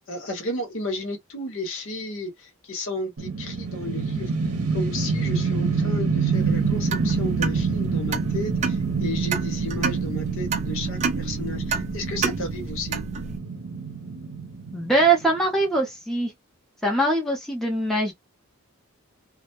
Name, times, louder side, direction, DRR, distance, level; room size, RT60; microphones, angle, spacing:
voice 1, 0.1-4.3 4.7-13.0, left 2 dB, 60° left, 0.8 m, -33 dB
sound 1, 3.2-15.4, right 5 dB, 85° right, 0.7 m, -27 dB
sound 2, 6.3-13.4, right 4 dB, 30° right, 0.3 m, -30 dB
voice 2, 14.7-16.3 16.8-18.1, right 2 dB, ahead, 0.7 m, -22 dB
2.1 x 2.0 x 2.9 m
head